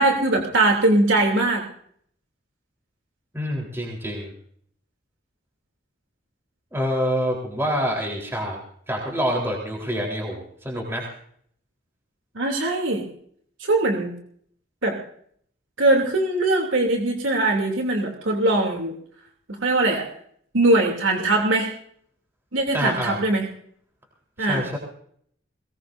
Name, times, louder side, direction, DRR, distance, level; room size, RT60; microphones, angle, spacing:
voice 1, 0.0-1.6 12.3-13.1 13.6-14.1 14.8-15.0 15.8-18.9 19.6-20.1 20.5-21.7 22.5-23.4 24.4-24.6, right 2 dB, 85° right, 1 dB, 3.0 m, -21 dB
voice 2, 3.3-4.3 6.7-8.6 8.9-11.1 22.7-23.2 24.4-24.8, equal, 15° right, -1 dB, 3.9 m, -26 dB
22.0 x 20.5 x 2.7 m, 0.63 s
head